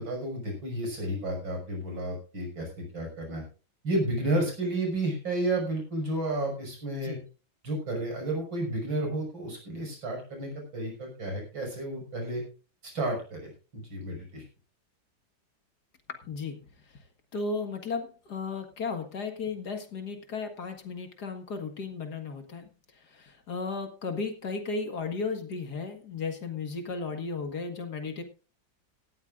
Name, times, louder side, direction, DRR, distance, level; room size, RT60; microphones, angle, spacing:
voice 1, 0.0-3.4 3.8-7.2 7.6-12.4 12.8-14.4, right 1 dB, 80° right, 2 dB, 6.6 m, -32 dB
voice 2, 16.3-16.6 17.3-22.7 23.1-28.2, left 4 dB, 55° left, 6 dB, 2.3 m, -35 dB
17.5 x 13.5 x 2.5 m, 0.34 s
omnidirectional pair, 2.1 m